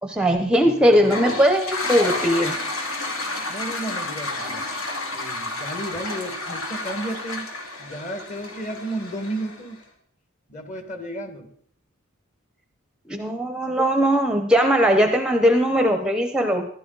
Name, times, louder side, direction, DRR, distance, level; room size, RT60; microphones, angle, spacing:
voice 1, 0.0-2.5 13.1-16.7, equal, 5° right, 6 dB, 0.7 m, -19 dB
Toilet flush, 0.9-9.7, left 2 dB, 65° left, 2.2 m, -30 dB
voice 2, 3.1-4.6 5.1-7.5 7.8-9.8 10.5-11.5, right 1 dB, 35° left, 6 dB, 1.7 m, -33 dB
14.5 x 11.5 x 3.9 m, 0.64 s
head